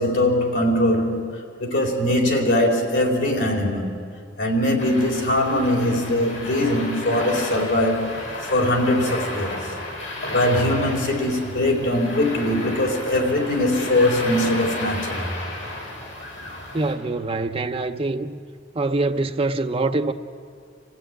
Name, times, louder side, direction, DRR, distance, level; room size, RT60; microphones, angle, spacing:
voice 1, 0.0-4.0 4.4-9.6 10.0-15.3, left 1 dB, 70° left, 4.3 m, -21 dB
sound 1, 4.8-16.9, left 2 dB, 85° left, 6.4 m, -33 dB
voice 2, 16.7-18.3 18.8-20.1, right 2 dB, 30° right, 0.6 m, -24 dB
28.0 x 15.5 x 9.1 m
head